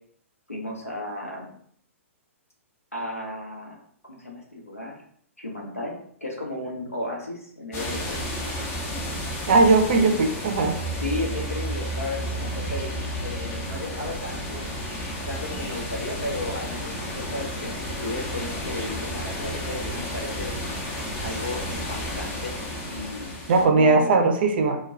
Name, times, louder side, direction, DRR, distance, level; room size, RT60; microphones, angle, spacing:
voice 1, 0.5-1.5 2.9-3.8 4.1-5.0 5.4-5.9 6.2-8.2 10.9-14.7 15.3-20.5 21.2-22.6 22.8-24.2, left 2 dB, 85° left, -2 dB, 0.8 m, -34 dB
sound 1, 7.7-23.7, equal, 30° left, 0.6 m, -32 dB
voice 2, 9.5-10.8 23.5-24.8, right 3 dB, 45° right, 5 dB, 0.4 m, -19 dB
2.2 x 2.2 x 3.7 m, 0.63 s
figure-of-eight pair, 115°, 7 cm